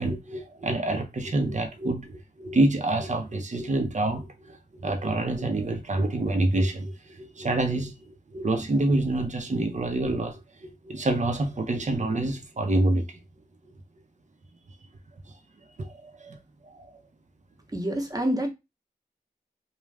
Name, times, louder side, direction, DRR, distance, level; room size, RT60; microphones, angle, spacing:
voice 1, 0.0-7.9 8.3-13.2 15.8-15.9 16.2-16.4 16.7-16.9, right 2 dB, 50° right, 0.7 m, -27 dB
voice 2, 17.7-18.5, equal, 25° right, 0.9 m, -27 dB
2.4 x 2.3 x 3.3 m
cardioid pair, 50°, 16 cm